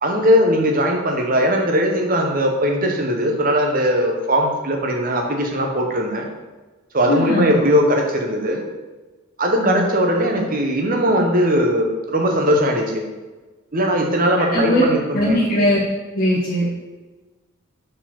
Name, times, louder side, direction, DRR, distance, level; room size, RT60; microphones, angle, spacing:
voice 1, 0.0-6.3 6.9-8.6 9.4-13.0 13.7-15.4, equal, 40° right, 2 dB, 0.9 m, -19 dB
voice 2, 7.1-7.5 9.5-9.9 14.5-14.9 15.1-15.8 16.1-16.7, left 1 dB, 40° left, -6 dB, 0.9 m, -19 dB
4.9 x 4.4 x 5.8 m, 1.2 s
head